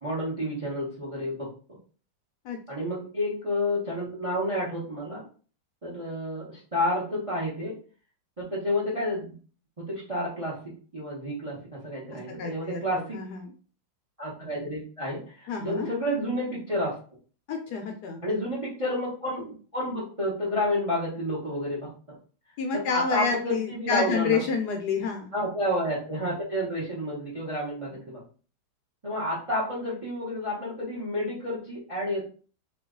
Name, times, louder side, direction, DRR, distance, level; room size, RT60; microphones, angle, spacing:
voice 1, 0.0-1.5 2.7-5.2 5.8-7.7 8.4-9.3 9.8-10.6 10.9-13.2 14.2-17.0 18.2-21.9 22.7-24.5 25.3-28.2 29.0-32.3, left 1 dB, 35° right, -4 dB, 0.5 m, -30 dB
voice 2, 12.4-13.5 15.5-15.9 17.5-18.3 22.6-25.3, left 5 dB, 70° left, 3 dB, 1.0 m, -29 dB
3.0 x 2.3 x 3.6 m, 0.40 s
omnidirectional pair, 2.0 m